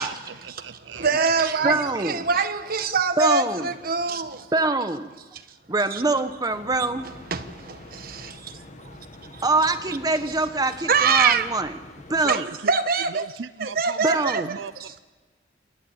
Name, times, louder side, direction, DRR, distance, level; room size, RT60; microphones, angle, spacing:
voice 1, 0.0-2.5 12.1-12.7 13.0-15.0, right 5 dB, 85° right, 0.6 m, -39 dB
voice 2, 1.0-4.5 5.9-6.0 7.3-8.5 9.2-9.4 10.9-11.5 12.3-12.4 12.7-13.3 13.6-14.6, right 5 dB, 55° right, 1.3 m, -24 dB
voice 3, 1.6-2.2 3.2-3.7 4.5-5.1 5.7-7.1 9.4-11.7 12.1-12.5 14.0-14.5, right 3 dB, 20° right, 1.0 m, -24 dB
sound 1, 6.5-12.4, left 2 dB, 40° left, 1.3 m, -45 dB
28.0 x 12.0 x 8.8 m
head